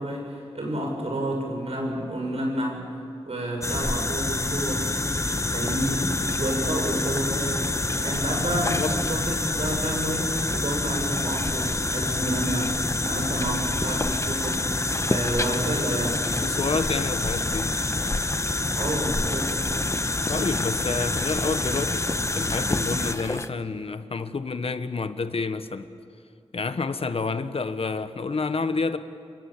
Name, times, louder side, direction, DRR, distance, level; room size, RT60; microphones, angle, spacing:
voice 1, 0.0-2.9 3.3-4.9 5.5-7.7 8.0-14.7 15.1-16.2 18.8-19.7, right 1 dB, 75° right, 6.8 m, -30 dB
sound 1, 3.6-23.5, left 2 dB, 30° left, 1.0 m, -27 dB
voice 2, 8.5-9.0 16.3-17.8 20.3-25.9 26.5-29.0, left 4 dB, 65° left, 1.2 m, -29 dB
28.0 x 25.5 x 7.4 m
wide cardioid pair, 70°, 11 cm